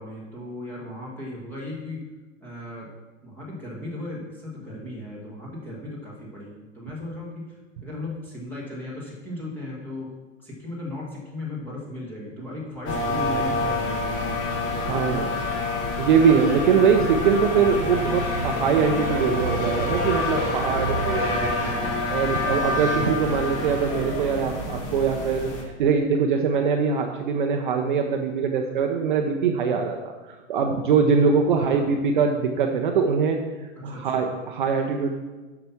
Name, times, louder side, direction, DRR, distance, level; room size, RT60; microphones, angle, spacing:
voice 1, 0.0-2.0 2.4-2.9 3.2-10.1 10.4-15.3 20.7-22.0 31.5-31.9 33.7-34.3, left 1 dB, 5° left, -5 dB, 1.5 m, -36 dB
sound 1, 12.9-25.6, left 2 dB, 25° left, 1.2 m, -27 dB
voice 2, 14.9-15.3 16.0-21.3 22.1-25.5 25.8-30.1 30.5-33.4 33.8-35.1, right 6 dB, 40° right, 3 dB, 0.7 m, -22 dB
7.6 x 6.0 x 6.9 m, 1.3 s
supercardioid pair, 175°, 38 cm